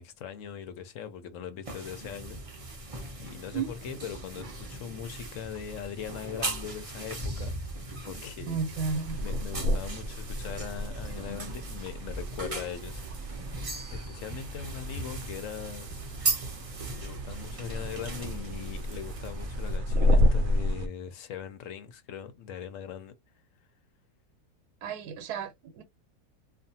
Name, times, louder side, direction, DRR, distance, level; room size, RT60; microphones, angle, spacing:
voice 1, 0.0-2.4 2.7-2.8 3.2-8.6 9.2-13.3 13.9-16.0 16.9-23.1, left 8 dB, 70° left, 0.8 m, -41 dB
sound 1, 1.6-19.8, right 2 dB, 35° right, 0.5 m, -38 dB
voice 2, 8.5-9.2 24.8-25.8, right 5 dB, 85° right, 1.2 m, -33 dB
sound 2, 8.8-20.9, left 1 dB, 70° right, 0.9 m, -31 dB
2.5 x 2.4 x 2.7 m
omnidirectional pair, 1.6 m